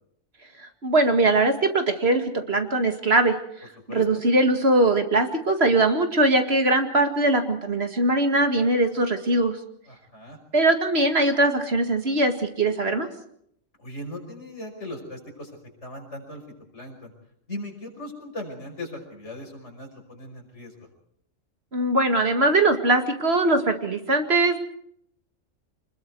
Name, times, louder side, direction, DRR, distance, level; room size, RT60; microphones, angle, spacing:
voice 1, 0.6-3.4 3.6-9.6 10.5-13.1 21.7-24.6, right 2 dB, 55° right, 6 dB, 2.3 m, -21 dB
voice 2, 9.9-10.4 13.8-15.5 15.8-16.4 16.7-17.1 17.5-20.9, left 1 dB, 65° left, 2 dB, 5.8 m, -38 dB
26.0 x 21.0 x 4.7 m, 0.68 s
omnidirectional pair, 1.3 m